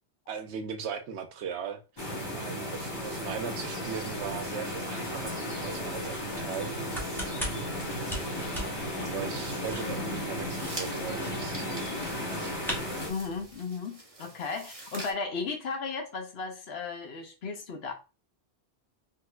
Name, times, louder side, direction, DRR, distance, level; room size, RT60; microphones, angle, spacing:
voice 1, 0.3-7.1 7.7-12.6, right 7 dB, 90° right, 0.9 m, -39 dB
sound 1, 2.0-13.1, left 1 dB, 25° left, 1.1 m, -35 dB
sound 2, 3.0-13.6, equal, ahead, 0.8 m, -43 dB
sound 3, 6.7-15.1, right 2 dB, 25° right, 0.8 m, -47 dB
voice 2, 9.8-10.2 13.1-17.9, left 4 dB, 75° left, 1.0 m, -35 dB
3.7 x 2.7 x 2.3 m
omnidirectional pair, 1.1 m